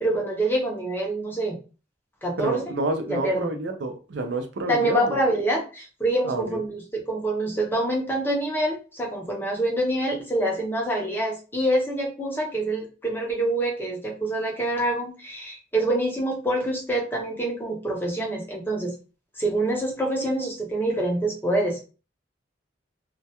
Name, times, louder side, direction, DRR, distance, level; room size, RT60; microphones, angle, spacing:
voice 1, 0.0-1.5 2.2-2.6 3.1-3.5 4.7-18.9 19.4-21.9, right 1 dB, 10° left, 0 dB, 0.5 m, -26 dB
voice 2, 2.4-5.2 6.2-6.6, right 2 dB, 70° right, 6 dB, 0.4 m, -29 dB
2.2 x 2.1 x 2.8 m, 0.34 s
head